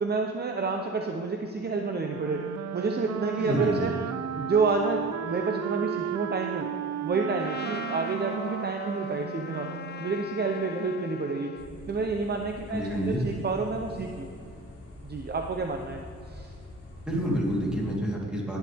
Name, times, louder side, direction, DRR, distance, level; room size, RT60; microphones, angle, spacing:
voice 1, 0.0-2.4 2.7-3.9 4.4-6.7 7.0-9.7 10.0-11.5 11.9-14.3 15.0-16.0 16.3-16.5, right 4 dB, 35° right, 4 dB, 0.9 m, -29 dB
Wind instrument woodwind instrument, 2.0-10.2, right 11 dB, 65° right, 0.5 m, -34 dB
voice 2, 3.4-3.9 12.7-13.2 17.1-18.6, equal, 5° right, -5 dB, 3.7 m, -28 dB
Trumpet, 7.4-11.7, left 7 dB, 35° left, 0.5 m, -41 dB
sound 1, 11.5-18.0, left 1 dB, 55° left, 3.7 m, -45 dB
18.5 x 10.5 x 3.6 m, 2.6 s
cardioid pair, 110°, 29 cm